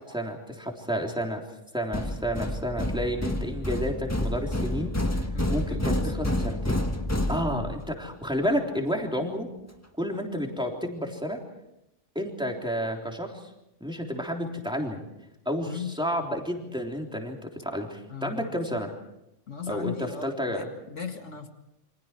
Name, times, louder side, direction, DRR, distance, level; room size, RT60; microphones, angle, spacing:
voice 1, 0.0-1.4 1.7-6.8 7.3-9.5 10.0-11.4 12.2-13.4 13.8-15.0 15.5-18.9 19.7-19.9 20.2-20.7, equal, 5° right, 1 dB, 3.6 m, -31 dB
sound 1, 1.9-7.9, left 1 dB, 15° left, 1.5 m, -29 dB
voice 2, 5.3-6.1 7.3-7.8 15.7-15.9 18.1-18.5 19.5-21.5, left 6 dB, 75° left, 4 dB, 2.4 m, -38 dB
29.0 x 25.0 x 4.6 m, 0.87 s
omnidirectional pair, 1.3 m